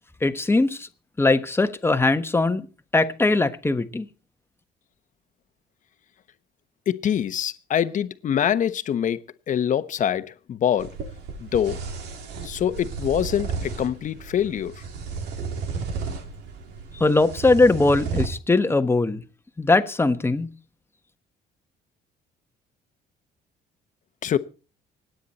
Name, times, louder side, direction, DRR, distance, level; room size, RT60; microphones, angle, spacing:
voice 1, 0.2-0.9 1.2-2.7 2.9-4.1 16.9-19.2 19.6-20.5, left 2 dB, 15° left, 1.3 m, -20 dB
voice 2, 6.9-10.9 11.4-11.8 12.4-14.7 24.2-24.4, left 9 dB, 50° left, 1.1 m, -24 dB
sound 1, 10.8-18.3, right 5 dB, 80° right, 3.0 m, -33 dB
25.0 x 9.5 x 4.2 m
cardioid pair, 110°, 17 cm